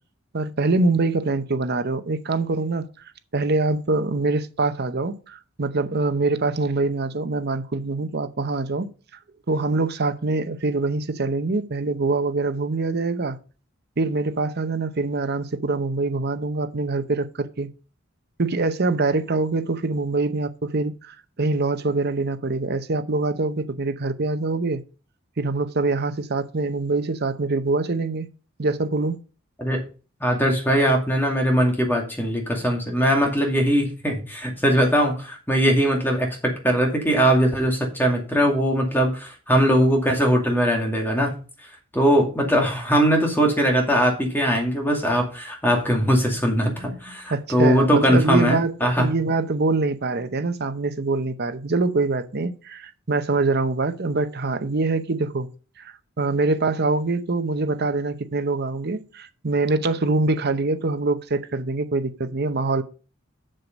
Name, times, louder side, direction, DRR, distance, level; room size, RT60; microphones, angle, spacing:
voice 1, 0.3-2.8 3.3-8.9 9.5-13.4 14.0-17.7 18.4-24.8 25.4-28.3 28.6-29.2 46.8-55.5 55.8-62.8, right 3 dB, 50° right, 0.8 m, -24 dB
voice 2, 30.2-41.4 41.9-49.1, equal, 10° left, 2.2 m, -20 dB
7.6 x 6.9 x 5.2 m
head